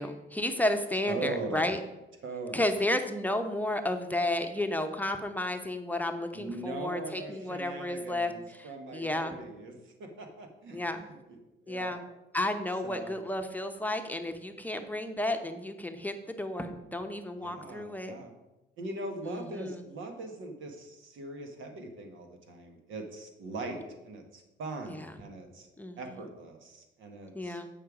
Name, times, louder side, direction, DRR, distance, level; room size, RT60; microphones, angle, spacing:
voice 1, 0.0-1.8 2.5-9.4 10.7-11.0 11.7-12.0 12.3-18.1 19.2-19.8 24.9-25.1 25.8-26.0 27.3-27.7, left 1 dB, 10° left, 5 dB, 0.8 m, -32 dB
voice 2, 1.1-1.8 2.2-2.7 6.3-11.4 11.7-12.0 12.8-13.1 17.4-18.3 18.8-25.7 26.0-27.6, right 2 dB, 80° right, 5 dB, 1.4 m, -41 dB
8.4 x 5.6 x 4.9 m, 0.99 s
cardioid pair, 90°, 20 cm